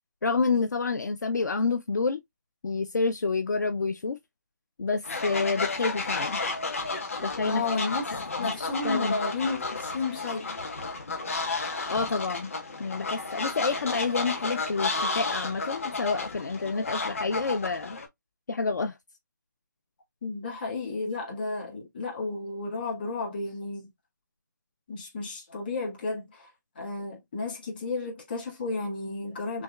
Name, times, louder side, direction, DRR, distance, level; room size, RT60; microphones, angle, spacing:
voice 1, 0.2-2.2 2.6-4.2 4.8-6.4 7.2-7.6 8.4-8.5 8.8-9.2 11.9-12.5 12.8-18.0 18.5-19.0, left 4 dB, 65° left, 0.5 m, -28 dB
Fowl, 5.0-18.1, left 3 dB, 45° left, 1.1 m, -32 dB
voice 2, 7.4-8.0 8.4-10.5 20.2-23.9 24.9-26.5 26.8-29.6, left 3 dB, 30° left, 1.9 m, -32 dB
6.0 x 2.3 x 2.3 m
hypercardioid pair, 175°, 10 cm